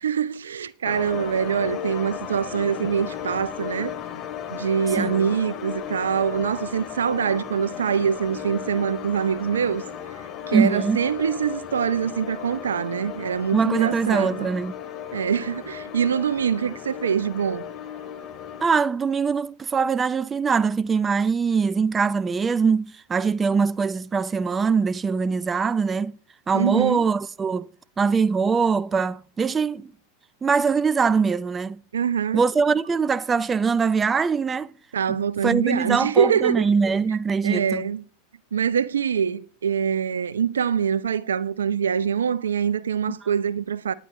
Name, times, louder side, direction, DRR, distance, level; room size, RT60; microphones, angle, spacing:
voice 1, 0.0-3.9 4.5-9.8 10.5-14.5 15.1-17.6 26.5-27.1 31.9-32.4 34.9-36.7 37.4-38.0 38.5-43.9, right 7 dB, 75° right, 0.6 m, -24 dB
sound 1, 0.8-18.7, left 9 dB, 40° left, 3.1 m, -35 dB
voice 2, 10.5-11.0 13.5-14.7 18.6-26.1 26.5-27.7 28.0-29.9 30.4-31.8 32.3-34.7 35.1-37.9, right 5 dB, 20° right, 0.5 m, -22 dB
18.5 x 10.0 x 3.1 m
figure-of-eight pair, 90°, 0 cm